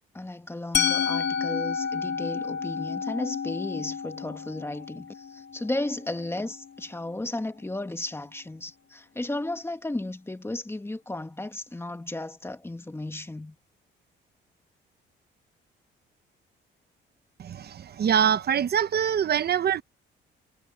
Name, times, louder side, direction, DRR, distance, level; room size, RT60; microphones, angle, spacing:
voice 1, 0.1-13.6, left 2 dB, 10° left, 1.7 m, -34 dB
Musical instrument, 0.7-6.6, left 6 dB, 60° left, 2.1 m, -30 dB
voice 2, 17.4-19.8, right 8 dB, 55° right, 1.0 m, -24 dB
cardioid pair, 90°, 20 cm